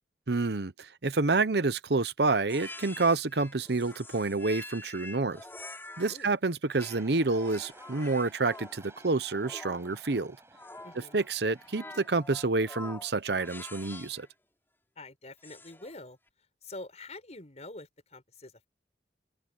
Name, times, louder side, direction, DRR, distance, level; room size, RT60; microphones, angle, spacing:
voice 1, 0.3-5.4 6.0-10.4 11.1-14.3, right 3 dB, 70° right, 0.9 m, -28 dB
sound 1, 2.5-6.3 6.7-14.3 15.4-16.0, left 2 dB, 15° left, 5.0 m, -47 dB
sound 2, 6.8-12.2, right 2 dB, 15° right, 6.4 m, -54 dB
voice 2, 10.8-11.2 15.0-16.2 16.6-18.7, left 2 dB, 40° left, 5.1 m, -46 dB
open air
head